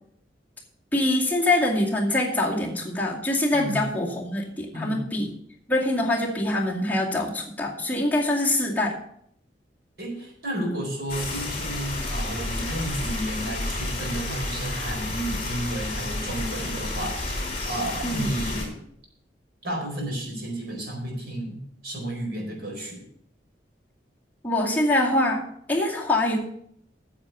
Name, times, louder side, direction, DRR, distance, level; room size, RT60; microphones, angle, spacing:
voice 1, 0.9-5.3 5.7-9.0 18.0-18.3 24.4-26.4, left 1 dB, 10° left, -4 dB, 2.3 m, -24 dB
voice 2, 3.5-3.8 4.7-5.1 10.0-18.8 19.6-21.6 21.8-23.0, right 1 dB, 60° right, 0 dB, 4.7 m, -32 dB
sound 1, 11.1-18.7, left 2 dB, 35° left, 4.2 m, -31 dB
9.2 x 7.5 x 6.9 m, 0.69 s
head